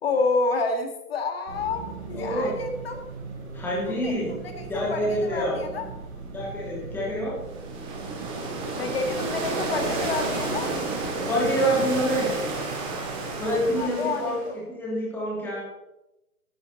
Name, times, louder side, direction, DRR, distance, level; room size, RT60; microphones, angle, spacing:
voice 1, 0.0-3.1 3.9-5.9 8.8-10.7 13.8-14.6, left 3 dB, 40° left, 6 dB, 2.1 m, -29 dB
sound 1, 1.5-13.8, right 4 dB, 45° right, 4.3 m, -39 dB
voice 2, 2.1-2.5 3.5-4.4 4.7-5.6 6.3-7.4 11.3-12.3 13.4-14.4 14.7-15.6, equal, 5° left, -4 dB, 2.9 m, -26 dB
sound 2, 7.4-14.5, right 2 dB, 10° right, 1.9 m, -31 dB
14.0 x 11.5 x 4.1 m, 0.92 s
hypercardioid pair, 150°, 44 cm